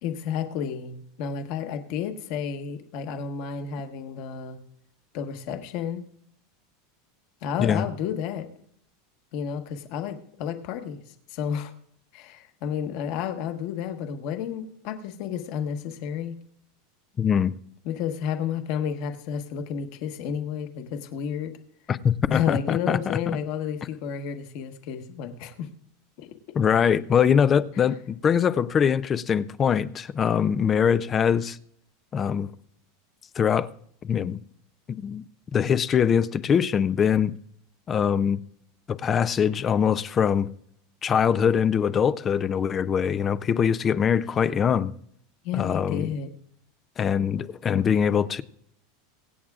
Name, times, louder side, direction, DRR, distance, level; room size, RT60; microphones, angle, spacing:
voice 1, 0.0-4.6 5.1-6.0 7.4-8.5 9.3-11.0 11.3-11.7 12.1-16.3 17.8-21.5 22.3-25.7 26.2-26.3 45.4-46.3, left 8 dB, 45° left, 1.3 m, -31 dB
voice 2, 17.2-17.5 21.9-23.2 26.6-31.6 32.1-32.5 33.4-33.7 34.0-34.4 35.0-35.2 35.5-37.3 37.9-38.4 38.9-40.5 41.0-44.9 45.5-46.1 47.0-48.4, left 7 dB, 20° left, 0.4 m, -23 dB
23.5 x 8.7 x 2.4 m
supercardioid pair, 170°, 0 cm